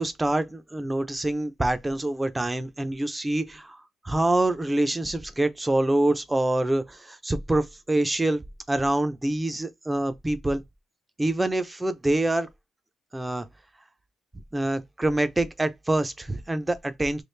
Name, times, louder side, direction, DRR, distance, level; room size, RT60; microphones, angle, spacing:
voice 1, 0.0-3.8 4.0-8.4 8.7-10.6 11.2-12.5 13.1-13.5 14.5-17.2, right 1 dB, 10° right, 0.4 m, -25 dB
3.2 x 2.4 x 3.1 m
cardioid pair, 175°, 0 cm